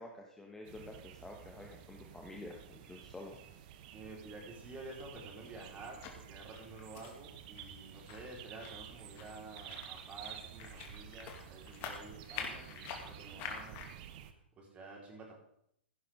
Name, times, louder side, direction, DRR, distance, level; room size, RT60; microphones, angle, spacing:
voice 1, 0.0-3.4, left 2 dB, 10° left, 0 dB, 1.4 m, -49 dB
sound 1, 0.6-14.3, right 10 dB, 45° right, 1.2 m, -52 dB
voice 2, 3.9-13.9 14.5-15.3, right 2 dB, 20° right, -2 dB, 4.7 m, -50 dB
sound 2, 4.6-13.9, left 6 dB, 35° left, 2.2 m, -48 dB
16.0 x 11.0 x 3.8 m, 0.72 s
figure-of-eight pair, 105°, 6 cm